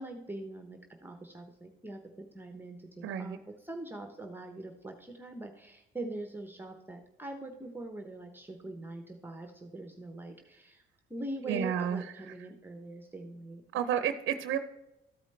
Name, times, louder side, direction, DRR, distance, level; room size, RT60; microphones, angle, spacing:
voice 1, 0.0-10.8 11.1-13.6, right 2 dB, 10° right, 5 dB, 0.9 m, -43 dB
voice 2, 3.0-3.4 11.5-12.0 13.7-14.6, right 9 dB, 80° right, 9 dB, 0.6 m, -30 dB
13.5 x 4.9 x 3.3 m, 0.94 s
cardioid pair, 90°, 20 cm